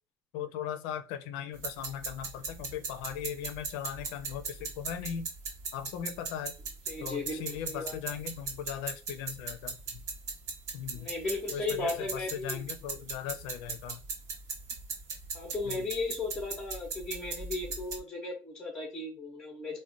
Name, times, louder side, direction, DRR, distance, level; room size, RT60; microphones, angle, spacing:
voice 1, 0.3-5.3 5.7-6.5 7.0-10.0 10.7-11.1 11.5-14.0 15.6-15.9, left 9 dB, 85° left, 9 dB, 0.4 m, -38 dB
sound 1, 1.5-18.0, right 4 dB, 45° right, 0.8 m, -39 dB
voice 2, 6.9-8.0 10.9-12.6 15.3-19.8, left 3 dB, 10° left, -1 dB, 0.6 m, -36 dB
2.4 x 2.1 x 3.8 m, 0.32 s
cardioid pair, 180°, 7 cm